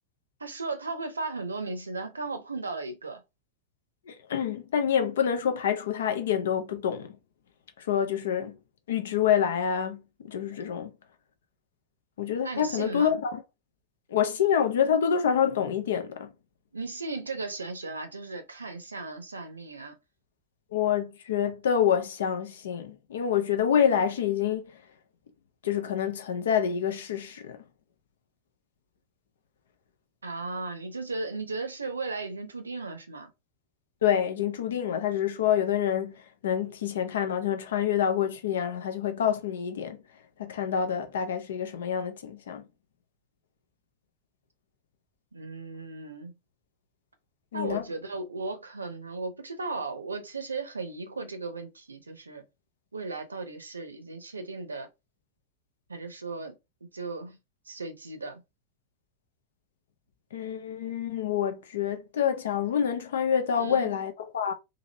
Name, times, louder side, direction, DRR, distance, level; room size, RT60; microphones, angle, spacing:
voice 1, 0.4-3.2 12.4-13.2 16.7-20.0 30.2-33.3 45.3-46.3 47.5-52.4 52.9-54.9 55.9-56.5 56.8-57.4 57.7-58.4 63.5-63.9, right 3 dB, 75° right, 0.6 m, -36 dB
voice 2, 4.1-7.2 7.8-8.6 8.9-10.9 12.2-13.4 14.1-16.3 20.7-24.7 25.6-27.6 34.0-40.0 40.4-42.6 47.5-47.8 60.3-64.5, left 8 dB, 60° left, 0.5 m, -27 dB
2.8 x 2.6 x 2.7 m
figure-of-eight pair, 90°, 0 cm